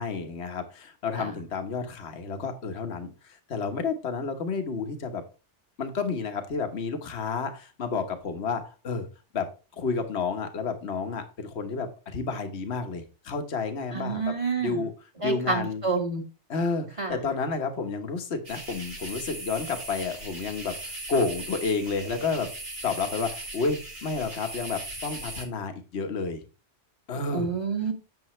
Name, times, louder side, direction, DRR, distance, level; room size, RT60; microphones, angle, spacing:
voice 1, 0.0-5.2 5.8-9.1 9.3-9.5 9.8-14.9 15.2-15.8 16.5-22.5 22.8-26.4 27.1-27.5, left 4 dB, 65° left, 6 dB, 1.5 m, -30 dB
voice 2, 13.9-14.8 15.2-16.2 17.0-17.1 27.3-27.9, right 4 dB, 25° right, 2 dB, 2.1 m, -28 dB
sound 1, 18.4-25.4, right 2 dB, 55° right, 3.2 m, -39 dB
11.0 x 7.0 x 3.2 m, 0.32 s
omnidirectional pair, 1.2 m